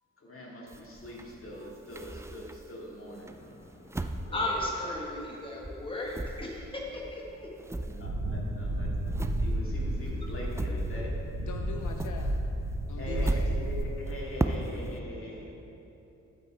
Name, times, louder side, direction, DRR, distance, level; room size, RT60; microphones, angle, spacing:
voice 1, 0.2-3.9 4.2-5.0 5.7-5.9 6.8-6.9 7.3-7.4 7.7-11.1 12.8-15.5, left 1 dB, 45° left, -4 dB, 2.3 m, -43 dB
sound 1, 0.7-2.8 3.3-5.4 5.6-11.3 11.6-15.0, right 1 dB, 10° right, 0.3 m, -37 dB
voice 2, 3.3-7.5, left 1 dB, 15° left, -2 dB, 1.3 m, -36 dB
sound 2, 8.0-13.9, right 1 dB, 70° right, 1.3 m, -32 dB
voice 3, 10.4-12.4 12.9-13.5, left 6 dB, 80° left, 3 dB, 0.6 m, -43 dB
12.0 x 5.7 x 4.4 m, 2.9 s
wide cardioid pair, 100°, 30 cm